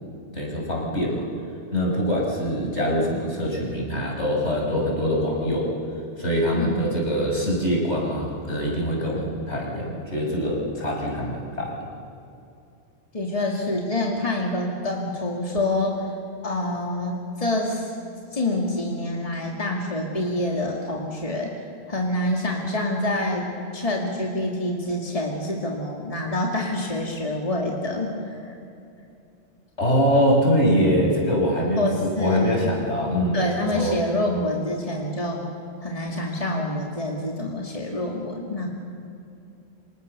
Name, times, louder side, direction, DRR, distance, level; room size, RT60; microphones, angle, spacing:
voice 1, 0.3-1.2 1.7-5.7 6.2-11.8 29.8-33.9, equal, 70° left, -2 dB, 6.4 m, -23 dB
voice 2, 13.1-16.1 16.4-17.9 18.3-28.6 31.8-32.7 33.3-35.4 35.8-38.7, left 1 dB, 30° left, -1 dB, 2.6 m, -27 dB
28.0 x 26.5 x 6.9 m, 2.7 s
omnidirectional pair, 1.2 m